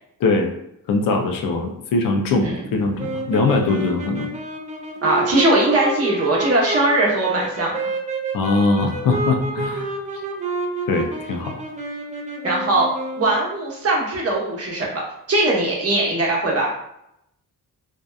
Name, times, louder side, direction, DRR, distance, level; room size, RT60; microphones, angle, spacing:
voice 1, 0.2-0.5 0.9-4.3 8.3-9.9 10.9-11.6, left 3 dB, 70° left, 4 dB, 0.5 m, -21 dB
sound 1, 3.0-13.5, right 2 dB, 20° right, 0.4 m, -29 dB
voice 2, 5.0-7.8 12.4-12.9 13.2-15.0 15.3-16.7, right 2 dB, 45° right, -3 dB, 0.9 m, -20 dB
2.7 x 2.2 x 2.2 m, 0.79 s
cardioid pair, 105°, 34 cm